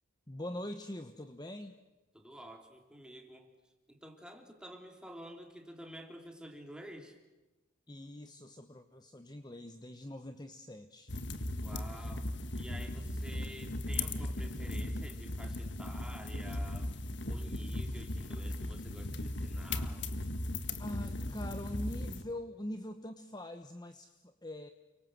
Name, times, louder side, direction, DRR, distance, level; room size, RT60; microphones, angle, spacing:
voice 1, 0.3-1.8 7.9-11.2 17.9-18.0 20.8-24.7, left 1 dB, 20° left, 8 dB, 1.0 m, -43 dB
voice 2, 2.1-7.2 11.6-17.0 17.2-20.1, equal, 5° right, 3 dB, 3.3 m, -50 dB
sound 1, 11.1-22.2, left 1 dB, 60° left, 1.7 m, -37 dB
29.5 x 24.5 x 7.7 m, 1.1 s
head